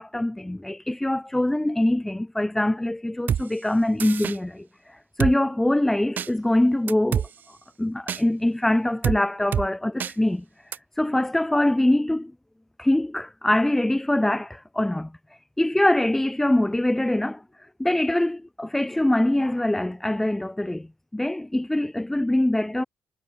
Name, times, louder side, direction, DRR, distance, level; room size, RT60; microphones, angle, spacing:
voice 1, 0.0-7.3 7.8-10.4 11.0-12.3 12.8-15.1 15.6-17.4 17.8-20.9 21.1-22.8, left 1 dB, 10° left, 4.6 m, -23 dB
Drum kit, 3.3-3.4 4.0-4.4 5.2-5.3 6.2-6.3 6.9-7.3 8.1-8.2 9.0-9.2 9.5-9.7 10.0-10.1 10.7-10.8, right 8 dB, 60° right, 0.9 m, -25 dB
cardioid pair, 105°, 4 cm